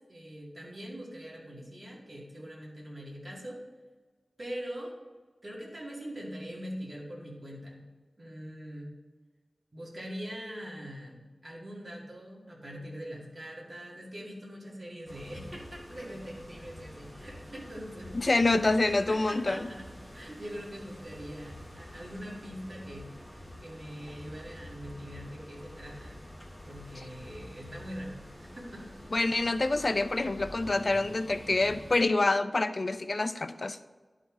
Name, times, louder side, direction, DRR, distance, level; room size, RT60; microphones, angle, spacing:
voice 1, 0.0-3.6 4.4-4.9 5.4-7.8 8.2-8.9 9.7-18.1 18.5-23.1 23.6-26.2 26.6-28.8 30.9-31.0 31.4-31.7, equal, 40° right, -3 dB, 2.2 m, -43 dB
sound 1, 15.1-31.9, left 1 dB, ahead, 1.6 m, -47 dB
voice 2, 18.1-19.7 27.0-27.1 29.1-33.8, left 2 dB, 50° left, 11 dB, 0.4 m, -27 dB
11.0 x 4.1 x 4.8 m, 1.3 s
wide cardioid pair, 85°, 0 cm